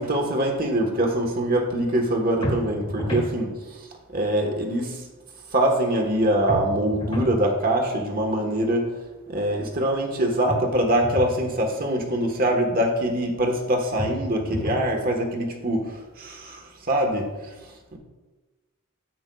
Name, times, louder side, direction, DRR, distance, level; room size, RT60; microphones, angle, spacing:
voice 1, 0.0-5.1 5.5-8.9 9.3-18.0, right 1 dB, 45° right, 3 dB, 1.2 m, -24 dB
sound 1, 2.4-3.3 6.5-7.4 10.5-11.4 14.0-14.9, equal, 25° left, 1.2 m, -30 dB
10.0 x 7.9 x 2.3 m, 1.2 s
head